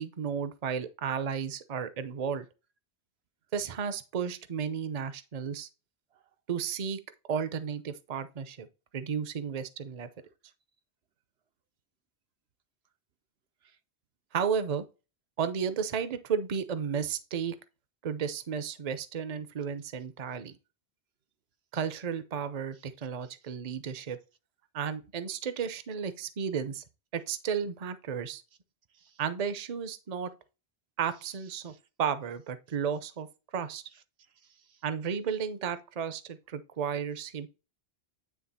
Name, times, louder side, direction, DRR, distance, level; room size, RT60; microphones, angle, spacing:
voice 1, 0.0-2.4 3.5-5.7 6.5-7.0 7.3-8.7 8.9-10.1 14.3-14.8 15.4-17.5 18.0-20.6 21.7-24.2 24.7-26.8 27.1-28.4 29.2-30.3 31.0-31.7 32.0-33.3 33.5-33.8 34.8-37.5, right 7 dB, 40° right, 0.7 m, -33 dB
voice 2, 34.4-34.8, right 7 dB, 70° right, 0.9 m, -65 dB
9.5 x 3.3 x 4.1 m
omnidirectional pair, 1.1 m